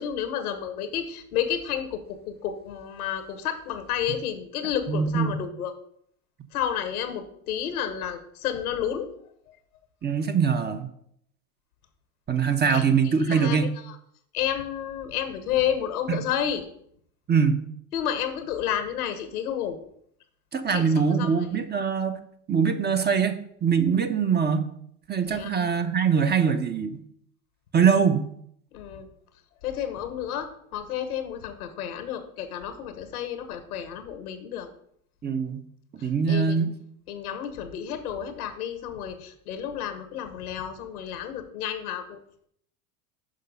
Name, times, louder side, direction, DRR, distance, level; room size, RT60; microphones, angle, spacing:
voice 1, 0.0-5.7 6.5-9.1 12.7-12.8 13.2-13.6 14.3-16.6 17.9-19.8 20.7-21.4 25.3-25.5 28.7-29.1 29.6-34.7 36.3-36.6 37.1-42.2, left 9 dB, 85° left, 9 dB, 1.2 m, -31 dB
voice 2, 4.9-5.4 10.0-10.9 12.3-13.7 16.1-16.2 17.3-17.6 20.5-22.2 22.5-24.7 25.1-27.0 27.7-28.3 35.2-35.6 36.0-36.7, right 6 dB, 25° right, 8 dB, 0.9 m, -23 dB
6.5 x 5.6 x 5.4 m, 0.69 s
hypercardioid pair, 85°, 43 cm